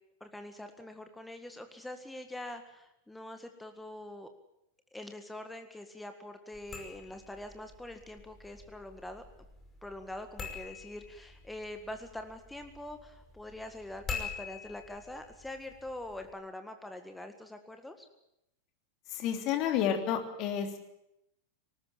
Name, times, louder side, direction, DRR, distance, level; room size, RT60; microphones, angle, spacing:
voice 1, 0.2-4.3 4.9-9.2 9.8-18.1, left 1 dB, 5° left, 7 dB, 1.8 m, -44 dB
sound 1, 6.5-16.3, left 5 dB, 20° left, 5.6 m, -46 dB
voice 2, 19.1-20.8, left 9 dB, 40° left, 5 dB, 3.3 m, -30 dB
19.5 x 19.0 x 8.8 m, 0.84 s
figure-of-eight pair, 90°, 0 cm